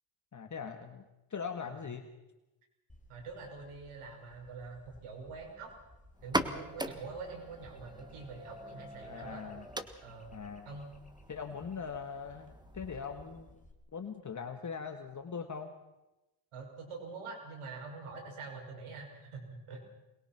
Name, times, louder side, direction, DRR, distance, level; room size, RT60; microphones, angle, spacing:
voice 1, 0.3-1.0 1.3-2.0 9.0-9.7 10.3-10.7 11.3-13.6 13.9-15.7, left 6 dB, 35° left, 6 dB, 1.7 m, -41 dB
sound 1, 2.9-13.7, left 1 dB, 15° left, 3.1 m, -58 dB
voice 2, 3.1-5.7 6.2-9.4 10.0-10.3 10.6-10.9 16.5-19.8, right 4 dB, 80° right, 3 dB, 5.8 m, -45 dB
sound 2, 6.2-13.6, right 1 dB, 10° right, 1.5 m, -41 dB
23.0 x 21.0 x 5.9 m, 0.99 s
cardioid pair, 100°, 50 cm